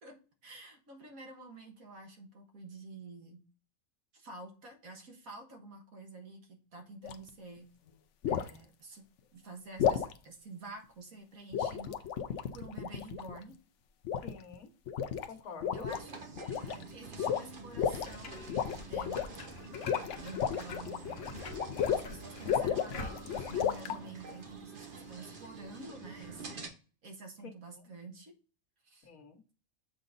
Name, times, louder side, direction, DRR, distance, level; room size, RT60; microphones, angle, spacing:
voice 1, 0.0-3.4 4.1-7.7 8.3-9.0 9.3-12.1 12.5-13.6 15.7-16.2 16.7-19.3 20.2-21.2 21.9-26.7 27.0-28.3 28.8-29.1, right 2 dB, 80° right, 2 dB, 2.0 m, -49 dB
sound 1, 7.0-7.3 8.2-8.6 9.8-10.1 11.5-13.4 14.0-14.5 14.9-15.3 15.6-16.0 16.4-16.8 17.2-18.1 18.5-19.4 19.7-22.1 22.5-24.0, left 8 dB, 65° left, 0.9 m, -33 dB
voice 2, 14.2-14.7 15.3-15.9 20.8-21.0 27.4-27.8 29.0-29.4, left 5 dB, 85° left, 6 dB, 1.6 m, -48 dB
sound 2, 15.9-26.7, right 3 dB, 40° right, 1.2 m, -48 dB
sound 3, 17.9-23.6, left 3 dB, 50° left, 1.3 m, -46 dB
7.5 x 4.0 x 3.8 m, 0.36 s
omnidirectional pair, 1.5 m